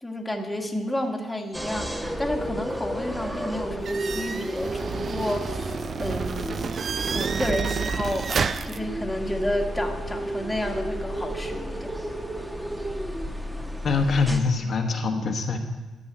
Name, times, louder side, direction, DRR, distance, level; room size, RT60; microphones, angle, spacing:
voice 1, 0.0-5.7 6.0-6.7 7.1-12.0, left 1 dB, 10° left, 2 dB, 1.6 m, -31 dB
sound 1, 1.5-14.4, equal, 5° right, 1.2 m, -32 dB
sound 2, 3.8-8.8, right 5 dB, 45° right, 0.5 m, -29 dB
voice 2, 13.8-15.6, left 4 dB, 50° left, 3 dB, 1.3 m, -24 dB
12.5 x 5.5 x 8.6 m, 1.3 s
cardioid pair, 90°, 0 cm